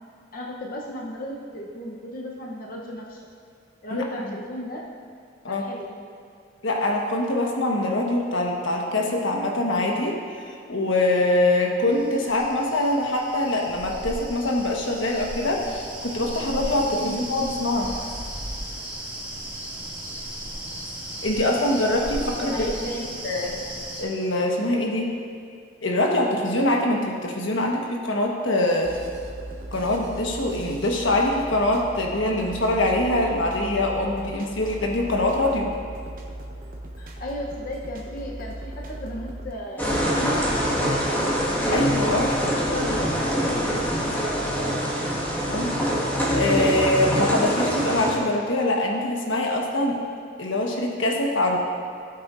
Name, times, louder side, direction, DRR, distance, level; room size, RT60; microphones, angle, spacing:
voice 1, 0.3-3.2 3.8-4.8 5.5-5.9 17.0-17.3 22.4-23.1 37.0-41.1 42.5-44.9, equal, 50° left, -2 dB, 0.9 m, -35 dB
voice 2, 6.6-17.9 21.2-22.7 23.0-23.6 24.0-25.1 25.8-29.0 29.7-35.7 41.7-42.3 45.4-45.7 46.3-50.0 50.4-51.6, left 1 dB, 85° left, 0 dB, 1.3 m, -24 dB
sound 1, 11.9-24.0, right 1 dB, 10° right, 2.1 m, -36 dB
sound 2, 28.8-39.5, right 1 dB, 50° right, 1.0 m, -38 dB
sound 3, 39.8-48.1, equal, 10° left, 1.7 m, -24 dB
16.0 x 8.6 x 2.6 m, 2.3 s
head